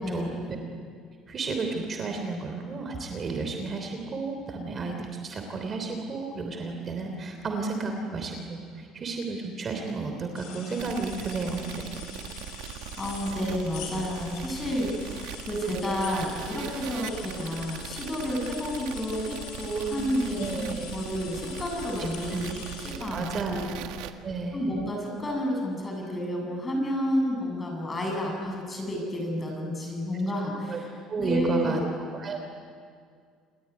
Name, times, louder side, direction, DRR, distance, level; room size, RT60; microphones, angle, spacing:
voice 1, 0.1-0.5 1.3-11.9 20.4-20.9 22.3-22.5 23.1-23.7 24.2-24.7 30.4-30.8 31.1-32.4, right 3 dB, 30° right, 4 dB, 3.2 m, -32 dB
sound 1, 10.4-22.9, left 7 dB, 80° left, 5.9 m, -44 dB
sound 2, 10.8-24.1, right 10 dB, 85° right, 1.7 m, -40 dB
voice 2, 13.0-23.7 24.0-24.1 24.5-30.9 31.2-31.7, equal, 15° left, 1 dB, 7.9 m, -30 dB
29.0 x 21.5 x 9.6 m, 2.1 s
cardioid pair, 145°, 0 cm